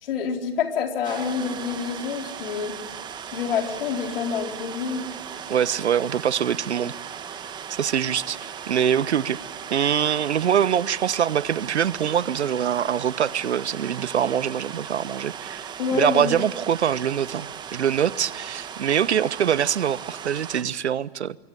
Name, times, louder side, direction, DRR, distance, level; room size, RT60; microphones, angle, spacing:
voice 1, 0.0-2.8 3.3-5.1 15.8-16.4, left 6 dB, 55° left, 3 dB, 4.3 m, -27 dB
sound 1, 1.0-20.6, right 8 dB, 15° right, 1.3 m, -37 dB
voice 2, 5.5-6.9 7.8-9.4 9.7-21.4, right 9 dB, 80° right, 20 dB, 0.9 m, -24 dB
24.5 x 24.0 x 8.1 m, 1.1 s
hypercardioid pair, 145°, 33 cm